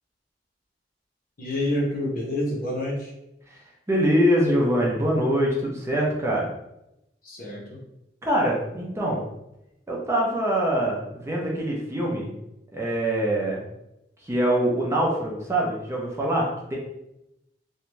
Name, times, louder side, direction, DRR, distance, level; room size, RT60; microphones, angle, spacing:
voice 1, 1.4-3.1 7.2-7.8, left 1 dB, 50° left, -3 dB, 0.8 m, -28 dB
voice 2, 3.9-6.5 8.2-9.2 9.9-12.3 12.7-13.6 14.2-16.8, equal, 15° right, -2 dB, 0.5 m, -24 dB
2.6 x 2.2 x 3.0 m, 0.87 s
head